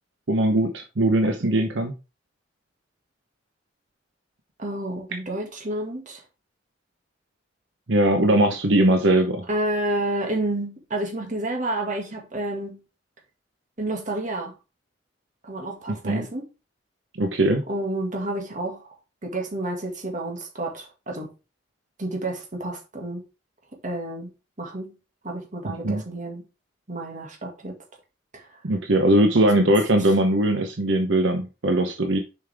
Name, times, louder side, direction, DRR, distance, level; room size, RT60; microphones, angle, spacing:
voice 1, 0.3-1.9 7.9-9.4 16.0-16.2 17.2-17.6 25.6-26.0 28.6-32.2, right 1 dB, 70° right, 0.9 m, -20 dB
voice 2, 4.6-6.2 9.5-12.8 13.8-14.5 15.4-16.4 17.7-18.9 19.2-21.3 22.0-23.2 23.8-24.3 24.6-24.9 25.2-26.4 26.9-27.8 28.3-28.5 29.5-29.7, right 1 dB, 45° right, 2.1 m, -30 dB
6.9 x 5.5 x 3.5 m
head